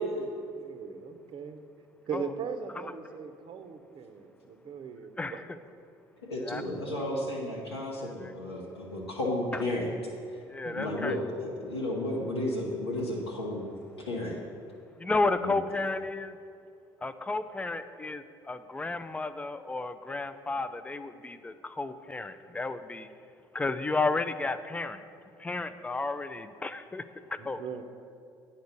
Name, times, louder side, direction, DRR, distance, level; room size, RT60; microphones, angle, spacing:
voice 1, 0.1-1.6 2.1-5.4 6.6-6.7 10.6-11.0 27.4-27.8, right 6 dB, 40° right, 8 dB, 0.7 m, -40 dB
voice 2, 5.2-5.6 6.4-6.6 8.2-8.3 10.5-11.2 15.0-16.4 17.0-23.1 23.5-25.0 25.4-27.0 27.3-27.8, left 3 dB, 10° left, 12 dB, 0.4 m, -32 dB
voice 3, 6.3-9.9 10.7-13.7 14.0-14.4 15.4-15.5, left 1 dB, 85° left, -5 dB, 1.1 m, -33 dB
9.3 x 4.3 x 6.6 m, 2.4 s
figure-of-eight pair, 55°, 13 cm